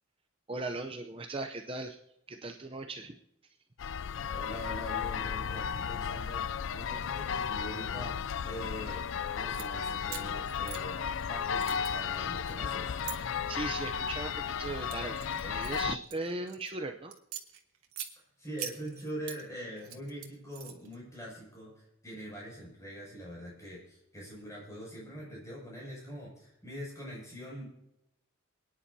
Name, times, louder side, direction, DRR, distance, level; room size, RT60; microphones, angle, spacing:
voice 1, 0.5-2.0 2.3-3.2 3.4-3.6 13.2-17.1, right 2 dB, 25° right, 4 dB, 0.6 m, -38 dB
sound 1, 3.8-16.0, left 7 dB, 60° left, 0.4 m, -34 dB
voice 2, 4.3-6.5 6.7-9.0 9.3-11.0 11.3-13.0 18.2-27.7, equal, 15° left, -4 dB, 6.5 m, -43 dB
sound 2, 7.8-14.7, right 1 dB, 60° right, 3.6 m, -60 dB
Handling large coins, 9.4-9.7 10.1-11.3 11.6-13.2 13.8-14.2 14.6-16.7 17.1-18.1 18.6-19.4 19.8-21.0, right 10 dB, 90° right, 1.6 m, -43 dB
28.0 x 10.0 x 2.8 m, 0.87 s
head